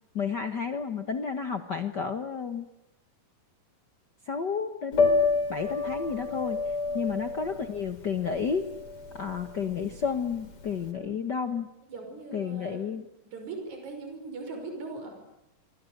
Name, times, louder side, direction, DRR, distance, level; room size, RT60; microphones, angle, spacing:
voice 1, 0.1-2.7 4.3-5.2 5.5-6.6 6.9-8.6 9.1-11.7 12.3-13.0, left 6 dB, 70° left, 8 dB, 1.0 m, -31 dB
Piano, 4.9-10.9, left 4 dB, 40° left, 4.1 m, -29 dB
voice 2, 6.9-7.2 10.9-11.2 11.9-12.9 13.2-15.2, right 3 dB, 55° right, 4 dB, 6.9 m, -40 dB
27.0 x 24.5 x 8.0 m, 0.87 s
omnidirectional pair, 4.1 m